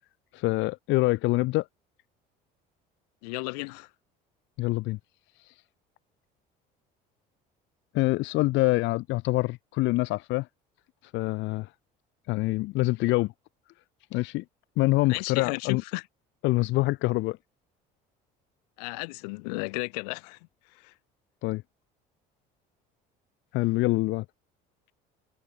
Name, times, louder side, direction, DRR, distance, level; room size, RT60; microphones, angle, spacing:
voice 1, 0.3-1.7 4.6-5.0 5.3-5.6 7.9-10.5 11.0-11.7 12.3-13.3 14.1-14.4 14.8-15.8 16.4-17.4 21.4-21.6 23.5-24.2, left 20 dB, 70° left, 1.0 m, -25 dB
voice 2, 3.2-3.9 15.1-16.0 18.8-20.4 20.7-20.9, left 30 dB, 85° left, 6.5 m, -34 dB
supercardioid pair, 85°, 20 cm